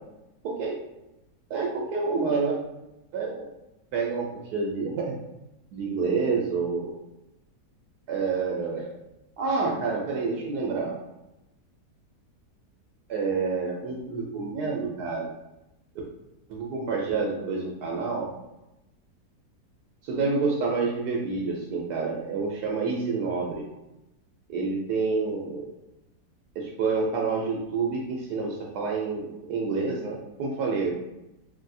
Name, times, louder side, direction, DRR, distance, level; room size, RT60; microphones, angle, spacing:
voice 1, 0.4-0.8 1.5-2.6 3.1-3.4 3.9-5.2 5.7-7.0 8.1-8.9 9.4-11.0 13.1-15.3 16.5-18.3 20.0-23.7 24.5-25.7 26.6-30.9, right 4 dB, 75° right, -2 dB, 1.1 m, -28 dB
3.2 x 2.7 x 2.5 m, 0.93 s
omnidirectional pair, 1.8 m